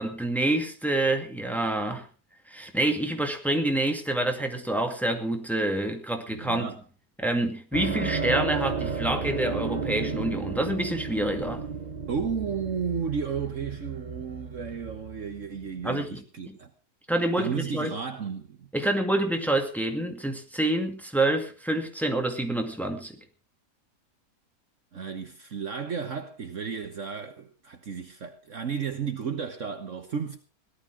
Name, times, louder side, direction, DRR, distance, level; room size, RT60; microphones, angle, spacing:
voice 1, 0.0-2.1 2.5-6.7 7.2-11.6 15.8-16.6 17.1-17.9 18.7-23.2, right 1 dB, ahead, 2.1 m, -27 dB
voice 2, 6.3-6.8 12.1-16.7 17.4-18.7 24.9-30.4, right 6 dB, 50° right, 1.5 m, -33 dB
sound 1, 7.7-16.1, right 5 dB, 30° right, 1.3 m, -33 dB
17.5 x 12.5 x 4.9 m
omnidirectional pair, 1.7 m